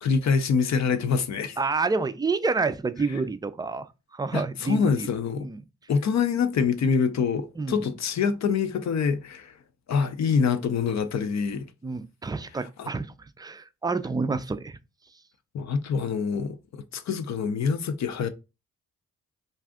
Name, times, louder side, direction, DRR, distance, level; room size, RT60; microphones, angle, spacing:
voice 1, 0.0-1.6 4.3-5.5 5.9-9.5 9.9-11.7 12.6-12.9 15.5-18.3, left 6 dB, 55° left, 0.5 m, -25 dB
voice 2, 1.6-3.9 4.1-5.1 5.4-5.6 7.6-7.9 11.8-14.8, right 4 dB, 15° right, 0.3 m, -28 dB
2.6 x 2.3 x 3.5 m
supercardioid pair, 45°, 33 cm